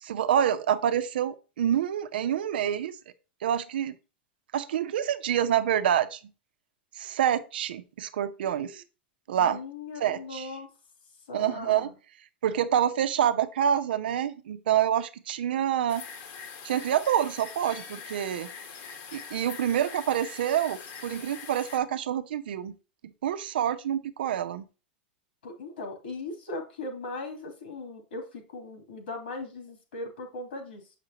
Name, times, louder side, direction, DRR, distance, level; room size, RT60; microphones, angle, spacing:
voice 1, 0.0-2.9 3.4-3.9 4.5-6.2 7.0-8.8 9.3-9.6 10.0-10.5 11.3-11.9 12.4-16.0 16.6-18.5 19.1-22.7 23.2-24.6, right 10 dB, 75° right, 0.7 m, -27 dB
voice 2, 9.4-10.7 11.3-11.9 25.4-30.8, left 2 dB, 80° left, 3.0 m, -39 dB
sound 1, 15.9-21.8, left 6 dB, 65° left, 1.5 m, -43 dB
7.6 x 5.9 x 2.9 m
hypercardioid pair, 100°, 5 cm